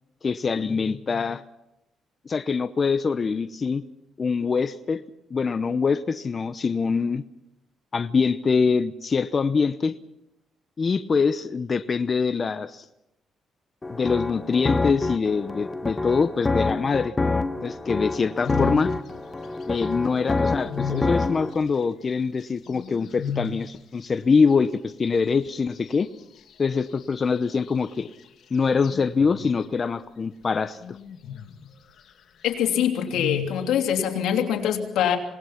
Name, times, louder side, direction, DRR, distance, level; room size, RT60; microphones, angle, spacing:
voice 1, 0.2-1.4 2.3-3.8 4.2-5.0 5.3-7.2 7.9-9.9 10.8-12.9 13.9-17.1 17.6-18.9 19.7-26.1 26.6-28.1 28.5-31.0, left 5 dB, 40° left, 11 dB, 0.8 m, -24 dB
sound 1, 13.8-21.5, left 3 dB, 20° left, 1.4 m, -27 dB
sound 2, 18.4-19.0 19.6-19.7 20.2-21.2 22.7-23.7 27.2-27.7 28.8-29.7 30.8-31.7 32.7-33.7, left 6 dB, 65° left, 2.3 m, -34 dB
voice 2, 32.4-35.2, left 9 dB, 85° left, 4 dB, 3.0 m, -24 dB
26.5 x 19.0 x 5.8 m, 0.87 s
cardioid pair, 90°, 0 cm